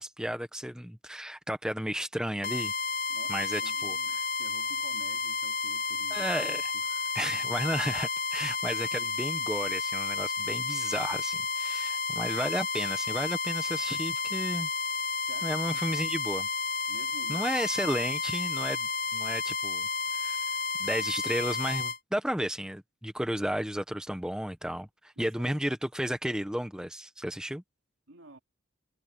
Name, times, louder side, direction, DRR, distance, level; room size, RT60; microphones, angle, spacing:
voice 1, 0.0-2.7 3.3-4.0 6.1-6.7 7.1-14.7 15.4-16.5 17.3-20.4 20.8-27.6, equal, 5° right, 1.0 m, -33 dB
sound 1, 2.4-22.0, left 4 dB, 40° left, 0.9 m, -31 dB
voice 2, 3.1-6.3 6.7-7.2 15.2-16.0 16.9-17.4 25.2-25.5 28.1-28.4, right 2 dB, 75° right, 2.6 m, -51 dB
head